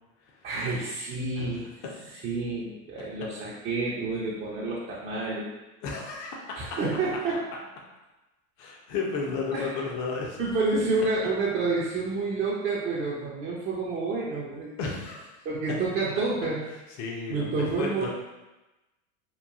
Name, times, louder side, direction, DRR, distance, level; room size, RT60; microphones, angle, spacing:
voice 1, 0.4-1.7 2.2-5.5 6.5-7.4 9.5-9.7 10.4-14.8 15.4-16.7 17.3-18.1, right 3 dB, 30° right, -6 dB, 0.4 m, -29 dB
voice 2, 5.8-6.4 8.6-10.4 14.8-15.3 17.0-18.1, left 4 dB, 40° left, -2 dB, 0.5 m, -32 dB
2.9 x 2.3 x 2.3 m, 1.1 s
supercardioid pair, 110°, 43 cm